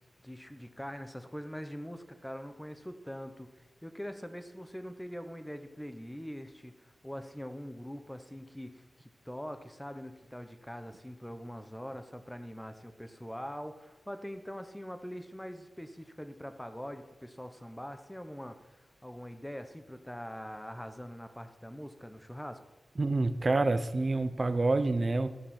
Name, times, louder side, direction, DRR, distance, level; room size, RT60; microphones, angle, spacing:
voice 1, 0.2-22.6, equal, 5° left, 8 dB, 1.0 m, -43 dB
voice 2, 23.0-25.3, right 2 dB, 35° right, 11 dB, 0.7 m, -27 dB
14.0 x 6.6 x 7.5 m, 1.2 s
wide cardioid pair, 140°, 0 cm